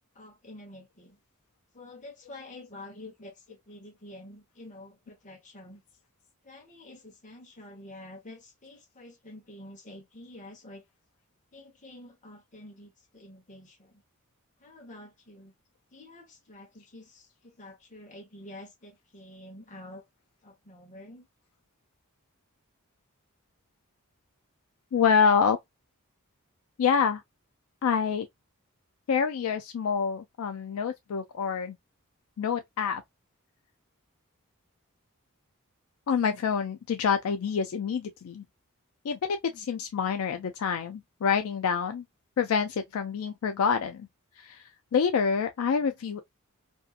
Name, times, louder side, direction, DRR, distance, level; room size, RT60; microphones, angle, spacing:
voice 1, 0.1-1.2 1.7-5.8 6.4-10.9 11.5-14.0 14.6-15.5 15.9-20.1 20.4-21.3, left 1 dB, 35° left, 1.0 m, -48 dB
voice 2, 24.9-25.6 26.8-27.2 27.8-28.3 29.1-31.8 32.4-33.0 36.1-38.4 39.0-42.0 42.4-44.1 44.4-44.6 44.9-46.2, left 6 dB, 65° left, 0.4 m, -27 dB
2.6 x 2.5 x 2.3 m
head